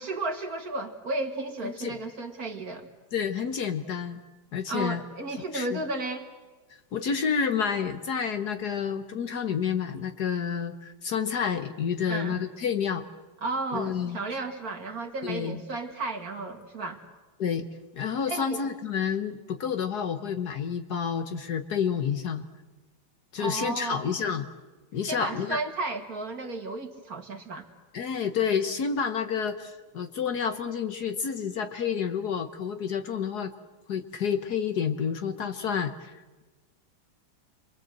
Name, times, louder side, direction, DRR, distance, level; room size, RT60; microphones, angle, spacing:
voice 1, 0.0-2.9 4.7-6.3 12.1-12.4 13.4-17.0 18.3-18.6 23.4-24.1 25.1-27.7, right 2 dB, 50° right, 5 dB, 2.4 m, -33 dB
voice 2, 1.6-2.0 3.1-4.2 4.5-5.0 5.5-5.8 6.9-13.0 13.7-14.2 15.2-15.6 17.4-17.7 17.9-22.4 23.3-24.5 24.9-25.6 27.9-33.5 33.9-36.1, left 7 dB, 55° left, 8 dB, 1.5 m, -29 dB
29.0 x 23.5 x 7.8 m, 1.2 s
omnidirectional pair, 2.2 m